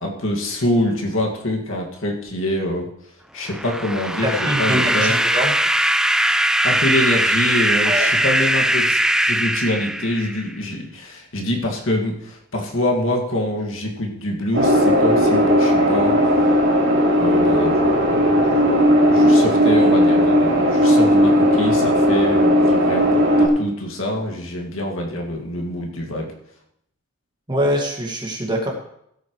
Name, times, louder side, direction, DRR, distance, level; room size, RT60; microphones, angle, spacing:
voice 1, 0.0-2.9 3.3-5.2 6.6-16.5 17.2-18.7 19.0-26.3, left 1 dB, 70° left, 0 dB, 2.2 m, -25 dB
sound 1, 3.5-10.5, right 1 dB, 5° right, 0.3 m, -20 dB
voice 2, 4.2-5.5 7.8-8.1 27.5-28.7, equal, 20° right, 0 dB, 2.1 m, -23 dB
sound 2, 14.5-23.5, equal, 60° right, 3.2 m, -16 dB
16.5 x 9.1 x 3.2 m, 0.73 s
head